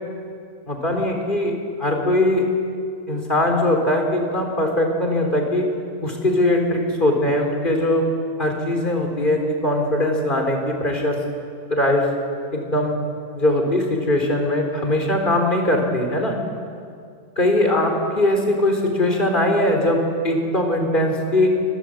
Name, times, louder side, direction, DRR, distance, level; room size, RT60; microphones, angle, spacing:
voice 1, 0.7-1.5 1.8-2.5 3.1-5.7 6.0-8.0 8.4-11.2 11.7-12.1 12.5-12.9 13.3-16.3 17.4-21.5, left 1 dB, 25° left, 2 dB, 4.0 m, -20 dB
27.0 x 22.5 x 7.8 m, 2.3 s
omnidirectional pair, 1.9 m